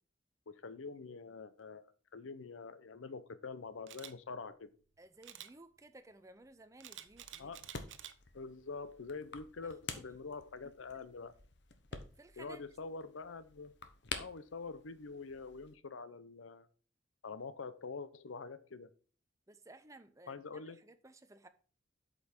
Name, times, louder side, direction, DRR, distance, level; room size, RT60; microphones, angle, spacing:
voice 1, 0.5-4.7 7.4-7.6 8.3-11.4 12.4-13.7 14.1-16.7 17.2-18.9 20.3-20.8, left 4 dB, 85° left, 0.7 m, -46 dB
Camera, 3.9-4.1 5.2-5.5 6.8-8.1 8.6-8.9, right 11 dB, 70° right, 0.6 m, -49 dB
voice 2, 5.0-7.5 9.9-10.0 11.9-12.6 19.5-21.5, right 2 dB, 15° right, 0.5 m, -57 dB
sound 1, 7.0-15.8, left 5 dB, 60° left, 0.9 m, -49 dB
8.1 x 5.3 x 4.3 m
head